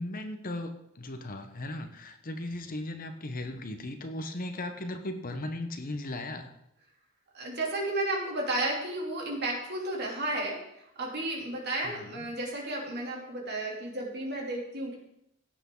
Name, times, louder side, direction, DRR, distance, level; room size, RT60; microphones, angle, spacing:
voice 1, 0.0-6.5 11.8-12.3, left 1 dB, 40° left, 7 dB, 1.0 m, -37 dB
voice 2, 7.3-10.6 11.0-15.0, right 2 dB, 50° right, -1 dB, 3.0 m, -32 dB
16.5 x 8.3 x 3.9 m, 0.77 s
head